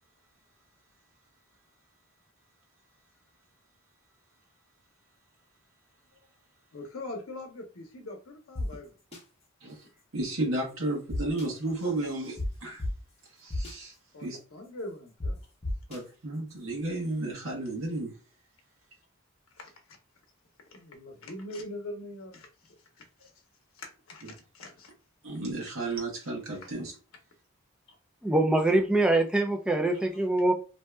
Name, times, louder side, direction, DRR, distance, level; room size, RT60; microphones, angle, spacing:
voice 1, 6.7-8.9 11.4-11.5 14.1-15.4 19.5-19.7 20.7-23.3 23.7-24.9 26.6-26.7 29.9-30.0, left 1 dB, 80° left, 0.7 m, -42 dB
sound 1, 8.6-8.7 9.1-9.2 11.1-11.5 12.4-12.5 12.8-12.9 13.5-13.7 15.2-15.3 15.6-16.0, left 1 dB, 30° left, 0.8 m, -31 dB
voice 2, 10.1-12.8 13.4-13.9 14.2-14.4 15.9-16.0 16.7-18.1 24.2-24.3 25.2-26.9, right 2 dB, 80° right, 0.9 m, -32 dB
voice 3, 28.2-30.5, right 2 dB, 5° right, 0.3 m, -24 dB
2.7 x 2.2 x 3.2 m
head